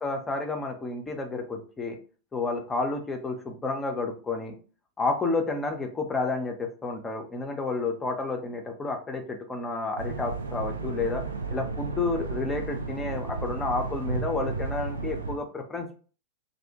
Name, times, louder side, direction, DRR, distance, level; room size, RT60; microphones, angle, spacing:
voice 1, 0.0-2.0 2.3-4.6 5.0-11.2 11.5-16.0, left 3 dB, 15° left, 4 dB, 0.5 m, -30 dB
sound 1, 10.0-15.4, right 4 dB, 75° right, 0.3 m, -33 dB
2.5 x 2.0 x 2.7 m, 0.38 s
figure-of-eight pair, 90°, 0 cm